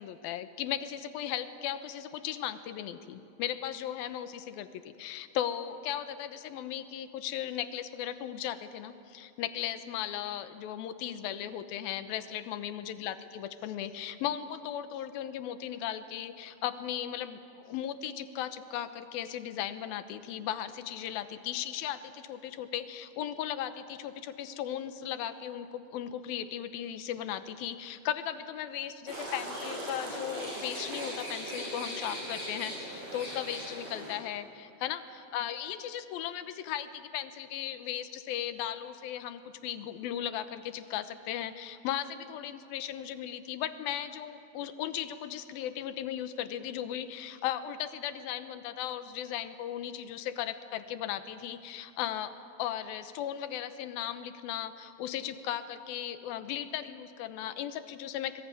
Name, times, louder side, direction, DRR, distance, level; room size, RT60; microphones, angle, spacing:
voice 1, 0.0-4.7 5.0-52.3 52.6-58.4, left 10 dB, 80° left, 11 dB, 2.8 m, -37 dB
sound 1, 29.1-34.2, equal, 45° right, 7.1 m, -39 dB
25.5 x 21.0 x 9.2 m, 2.7 s
omnidirectional pair, 4.3 m